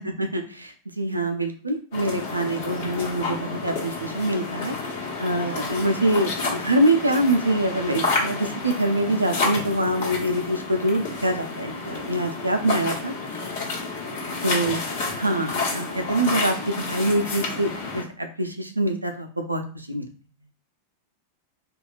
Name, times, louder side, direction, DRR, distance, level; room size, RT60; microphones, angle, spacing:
voice 1, 0.0-13.1 13.4-13.5 14.4-14.8 15.2-20.1, right 1 dB, 85° right, 5 dB, 0.4 m, -25 dB
sound 1, 1.9-18.0, left 3 dB, 55° left, 1.0 m, -30 dB
2.7 x 2.3 x 2.3 m, 0.40 s
figure-of-eight pair, 90°, 0 cm